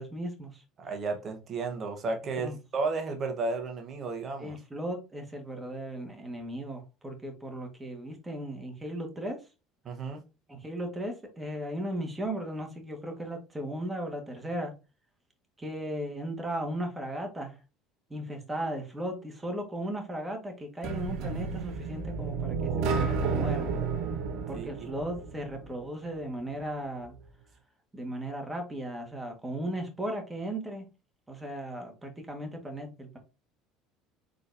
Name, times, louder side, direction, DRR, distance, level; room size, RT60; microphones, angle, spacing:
voice 1, 0.0-0.6 2.4-2.6 4.4-9.4 10.5-14.7 15.6-17.6 18.1-23.7 24.5-27.1 27.9-30.8 31.3-33.2, right 1 dB, 15° right, 1.5 m, -36 dB
voice 2, 0.8-4.6 9.8-10.2 24.5-24.9, right 3 dB, 40° right, 1.1 m, -33 dB
sound 1, 20.8-25.8, right 5 dB, 60° right, 0.7 m, -31 dB
4.0 x 3.8 x 2.6 m
hypercardioid pair, 70°, 0 cm